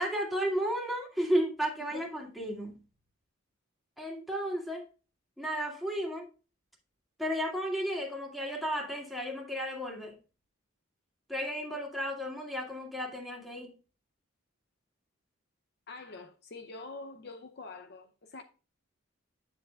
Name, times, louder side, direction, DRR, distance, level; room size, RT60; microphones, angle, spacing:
voice 1, 0.0-2.8 4.0-4.8 5.4-6.3 7.2-10.1 11.3-13.7, equal, ahead, 2.1 m, -33 dB
voice 2, 15.9-18.4, left 3 dB, 50° left, 0.6 m, -45 dB
9.8 x 6.8 x 2.4 m
head